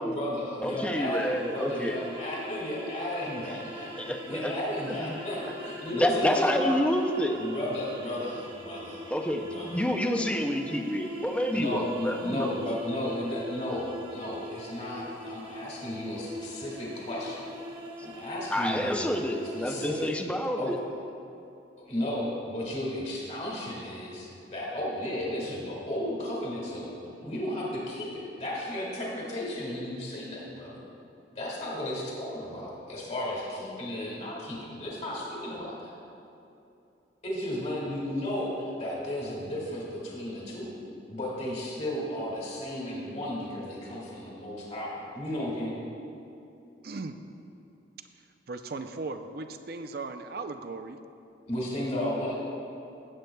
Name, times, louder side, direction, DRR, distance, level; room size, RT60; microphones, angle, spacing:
voice 1, 0.0-3.9 4.3-6.8 7.3-9.0 9.4-9.8 11.5-17.5 18.0-19.1 19.5-20.1 20.6-20.7 21.8-26.9 27.2-30.9 31.4-35.9 37.2-40.8 41.1-45.7 51.5-52.4, left 1 dB, 35° left, -5 dB, 2.0 m, -34 dB
voice 2, 0.6-2.0 4.0-4.5 4.9-5.1 5.9-7.4 9.1-12.5 18.5-20.8, equal, 5° left, 3 dB, 0.5 m, -28 dB
sound 1, 0.6-20.0, equal, 30° right, 1.0 m, -42 dB
voice 3, 46.8-47.2 48.5-51.0, right 3 dB, 55° right, 8 dB, 0.5 m, -37 dB
16.0 x 7.8 x 2.3 m, 2.8 s
head